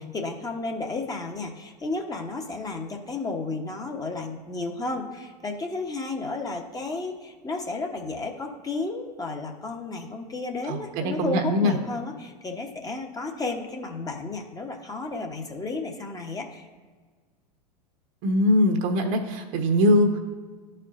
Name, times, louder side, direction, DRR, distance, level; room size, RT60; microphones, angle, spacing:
voice 1, 0.0-16.7, left 3 dB, 15° left, 2 dB, 0.9 m, -32 dB
voice 2, 10.7-11.7 18.2-20.2, left 1 dB, 55° right, 4 dB, 1.1 m, -22 dB
11.5 x 4.4 x 2.5 m, 1.4 s
hypercardioid pair, 95°, 21 cm